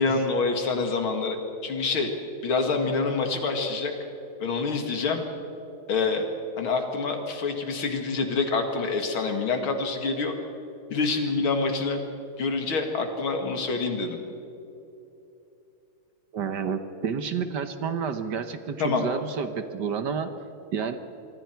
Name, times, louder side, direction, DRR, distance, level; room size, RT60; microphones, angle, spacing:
voice 1, 0.0-1.4 1.6-2.1 2.4-3.9 4.4-5.2 5.9-6.2 6.6-10.4 10.9-12.0 12.4-14.2 18.8-19.1, left 4 dB, 75° left, 4 dB, 2.8 m, -26 dB
voice 2, 16.3-20.3 20.7-21.0, right 6 dB, 60° right, 9 dB, 1.5 m, -30 dB
26.0 x 23.5 x 4.6 m, 2.9 s
omnidirectional pair, 2.3 m